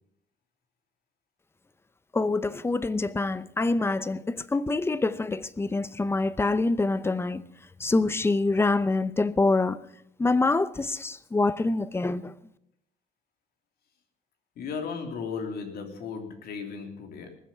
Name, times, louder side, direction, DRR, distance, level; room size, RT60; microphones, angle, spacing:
voice 1, 2.1-7.4 7.8-9.8 10.2-12.3, left 3 dB, 15° left, 0.7 m, -25 dB
voice 2, 14.6-17.3, left 5 dB, 65° left, 3.0 m, -35 dB
19.5 x 7.8 x 7.2 m
cardioid pair, 110°, 17 cm